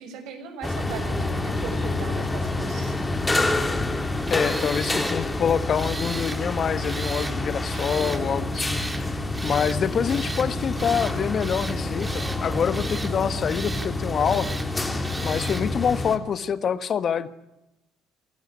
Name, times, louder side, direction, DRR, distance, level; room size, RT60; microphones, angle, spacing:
voice 1, 0.0-3.0, right 6 dB, 70° right, 7 dB, 6.0 m, -38 dB
sound 1, 0.6-16.2, left 2 dB, 15° left, 3.1 m, -28 dB
Tools, 4.2-5.2 5.7-6.4 6.8-7.3 7.7-8.2 8.5-9.0 9.3-9.8 10.1-10.5 10.8-11.1 11.4-12.4 12.7-13.1 13.4-13.9 14.2-14.7 15.0-15.6, right 2 dB, 15° right, 2.5 m, -36 dB
voice 2, 4.3-9.2 9.4-14.5 15.2-17.3, left 7 dB, 45° left, 13 dB, 1.4 m, -26 dB
26.5 x 14.5 x 9.9 m, 0.92 s
supercardioid pair, 95°, 0 cm